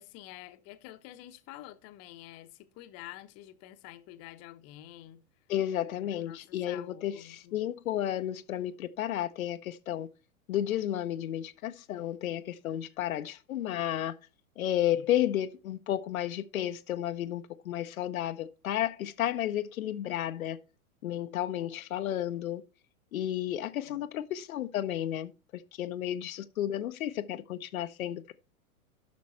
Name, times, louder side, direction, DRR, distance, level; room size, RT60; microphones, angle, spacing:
voice 1, 0.0-5.2 6.0-7.6 12.7-13.0 14.9-15.0 23.8-24.0, left 14 dB, 35° left, 0.9 m, -49 dB
voice 2, 5.5-10.1 10.5-14.2 14.6-20.6 21.0-22.6 23.1-28.3, left 12 dB, 70° left, 0.7 m, -32 dB
10.5 x 6.1 x 4.3 m
hypercardioid pair, 105°, 43 cm